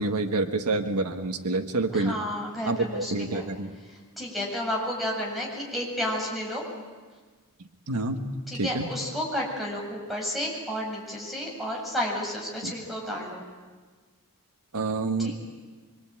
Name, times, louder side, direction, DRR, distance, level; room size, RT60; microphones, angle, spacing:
voice 1, 0.0-2.2 2.6-3.7 7.9-8.9 12.6-12.7 14.7-15.3, right 2 dB, 90° right, 5 dB, 1.6 m, -28 dB
voice 2, 1.9-3.5 4.2-6.6 8.5-13.4 15.2-15.3, equal, ahead, -2 dB, 7.8 m, -31 dB
26.0 x 25.0 x 9.0 m, 1.4 s
head